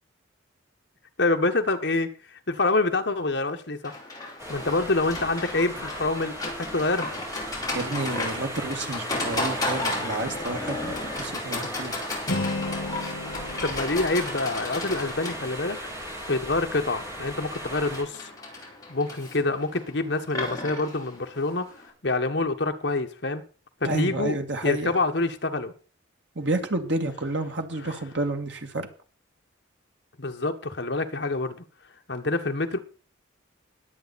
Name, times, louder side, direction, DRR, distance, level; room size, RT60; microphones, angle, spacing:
voice 1, 1.2-4.0 4.5-7.1 13.6-15.8 16.3-18.3 18.9-21.7 22.0-23.4 23.8-24.4 24.6-25.7 30.2-31.6 32.1-32.8, left 2 dB, 55° left, 1.5 m, -26 dB
Livestock farm animals working animals, 3.8-21.9, left 2 dB, 20° left, 4.5 m, -34 dB
sound 1, 4.4-18.0, equal, 15° right, 5.3 m, -37 dB
voice 2, 7.7-11.9 23.8-24.9 26.4-28.9, right 2 dB, 60° right, 2.2 m, -30 dB
Acoustic guitar, 12.2-16.2, left 2 dB, 75° left, 4.6 m, -34 dB
20.5 x 8.5 x 4.2 m
head